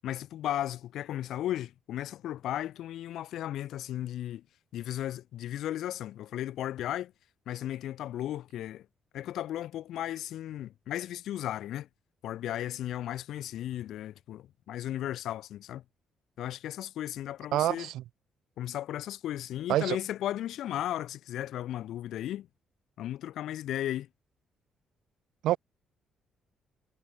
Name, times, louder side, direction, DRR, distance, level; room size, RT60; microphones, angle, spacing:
voice 1, 0.0-4.4 4.7-7.1 7.5-8.9 9.1-11.9 12.2-15.8 16.4-17.9 18.6-22.5 23.0-24.1, left 12 dB, 80° left, 3.0 m, -35 dB
voice 2, 17.5-18.0 19.7-20.0 25.4-25.6, right 14 dB, 85° right, 1.2 m, -26 dB
cardioid pair, 90°, 0 cm